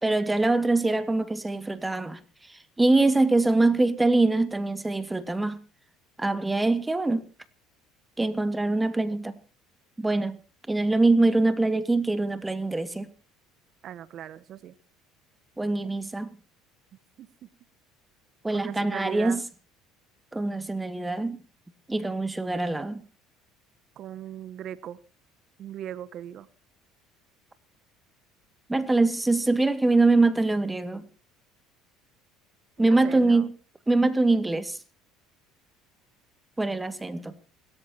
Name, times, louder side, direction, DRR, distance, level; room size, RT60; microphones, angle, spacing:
voice 1, 0.0-5.6 6.2-7.2 8.2-9.3 10.0-10.4 10.7-13.1 15.6-16.3 18.4-19.4 20.3-21.4 21.9-23.0 28.7-31.1 32.8-33.5 33.9-34.8 36.6-37.3, right 2 dB, 10° right, 2.2 m, -24 dB
voice 2, 13.8-14.7 15.8-15.9 17.2-17.3 18.5-19.4 24.0-25.0 25.6-26.5 32.8-33.5, right 10 dB, 55° right, 1.2 m, -38 dB
29.0 x 14.0 x 3.0 m
hypercardioid pair, 75°, 0 cm